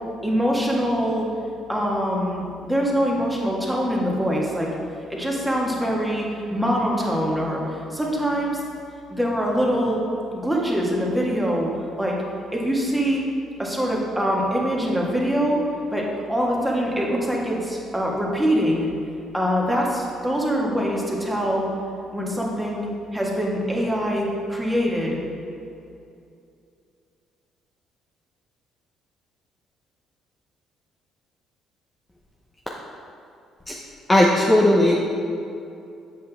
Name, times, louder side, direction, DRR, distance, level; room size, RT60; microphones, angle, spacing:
voice 1, 0.2-1.3 1.7-4.7 5.1-7.6 7.9-8.6 9.1-10.0 10.4-11.7 12.0-12.2 12.5-13.2 13.6-15.6 15.9-18.9 19.3-21.7 22.1-25.2, equal, 5° right, -3 dB, 1.6 m, -24 dB
voice 2, 34.1-35.0, left 1 dB, 15° left, -3 dB, 0.8 m, -16 dB
7.7 x 5.4 x 3.5 m, 2.6 s
supercardioid pair, 65°, 0 cm